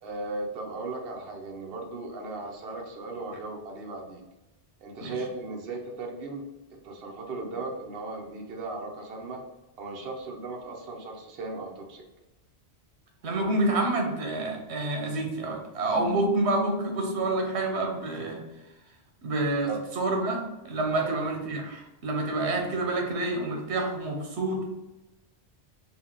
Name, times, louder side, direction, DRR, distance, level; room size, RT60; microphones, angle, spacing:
voice 1, 0.0-4.2 4.8-6.4 6.8-9.4 9.8-12.0 19.6-19.8 20.9-21.2, right 3 dB, 60° right, 1 dB, 0.9 m, -37 dB
voice 2, 13.2-18.4 19.2-24.6, right 2 dB, 80° right, 1 dB, 1.1 m, -28 dB
Keyboard (musical), 15.9-17.9, left 3 dB, 10° right, 1.1 m, -35 dB
4.0 x 2.3 x 3.7 m, 1.0 s
omnidirectional pair, 1.1 m